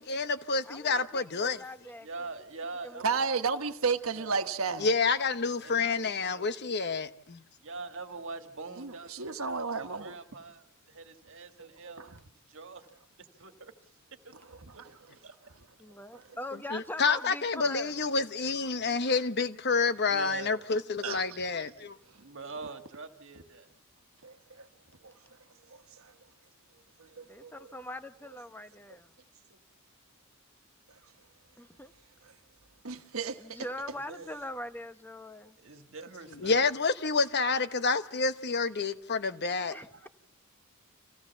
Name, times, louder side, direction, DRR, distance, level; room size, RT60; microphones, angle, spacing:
voice 1, 0.0-1.6 4.8-7.4 16.7-22.0 36.4-39.7, left 4 dB, 50° left, 1.0 m, -28 dB
voice 2, 0.6-2.1 2.8-3.0 15.8-18.0 27.2-29.2 31.6-31.9 33.4-35.6 39.7-40.1, left 1 dB, 10° left, 0.9 m, -42 dB
voice 3, 2.0-3.7 4.1-4.7 5.6-6.6 7.6-12.9 13.3-14.4 15.2-15.7 17.6-17.7 18.8-18.9 20.1-20.7 22.1-23.7 33.9-34.3 35.6-36.7, right 3 dB, 65° right, 1.8 m, -45 dB
voice 4, 3.0-4.9 8.8-10.2 11.8-12.1 21.0-21.2 24.2-24.7 25.0-25.1 25.7-26.1 27.0-27.7 32.8-33.6 39.7-39.8, right 5 dB, 80° right, 1.2 m, -33 dB
26.5 x 16.5 x 7.1 m
head